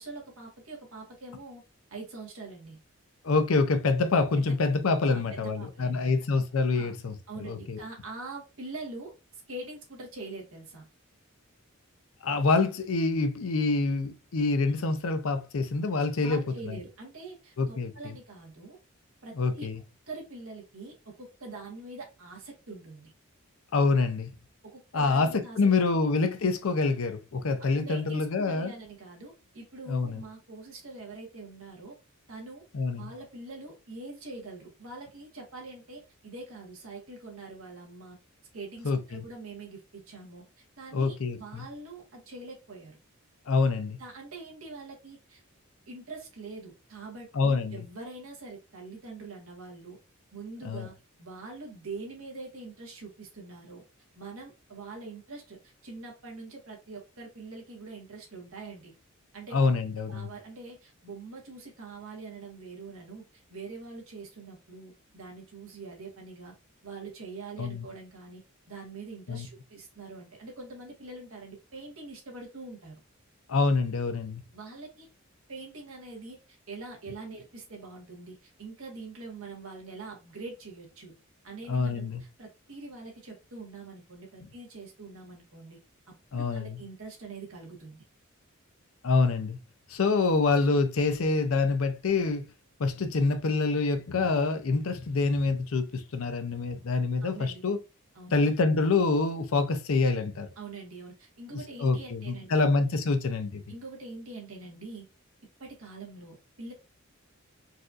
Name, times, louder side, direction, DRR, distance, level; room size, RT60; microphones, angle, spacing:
voice 1, 0.0-1.6 1.9-2.8 4.3-4.5 5.1-6.1 6.7-6.9 7.3-10.9 16.2-18.8 19.2-19.7 20.1-23.1 24.6-25.6 27.6-32.0 32.3-32.6 32.9-38.2 38.5-43.0 44.0-45.4 45.9-50.0 50.3-50.9 51.2-53.8 54.1-58.9 59.3-59.5 60.1-66.5 66.8-68.4 68.7-73.0 74.5-75.1 75.5-81.1 81.4-85.8 86.3-88.0 97.2-97.6 98.1-98.4 100.6-102.7 103.7-105.0 105.6-106.7, right 3 dB, 75° right, 1.3 m, -44 dB
voice 2, 3.2-7.8 12.2-16.8 17.6-18.1 19.3-19.8 23.7-24.3 24.9-28.7 29.9-30.2 32.7-33.1 38.8-39.2 40.9-41.6 43.5-44.0 47.3-47.8 50.6-50.9 59.5-60.3 67.6-67.9 69.3-69.5 73.5-74.4 81.7-82.2 86.3-86.8 89.0-89.6 89.9-92.4 92.8-97.8 98.3-100.5 101.5-103.6, left 3 dB, 70° left, 0.6 m, -26 dB
4.1 x 2.6 x 2.4 m
head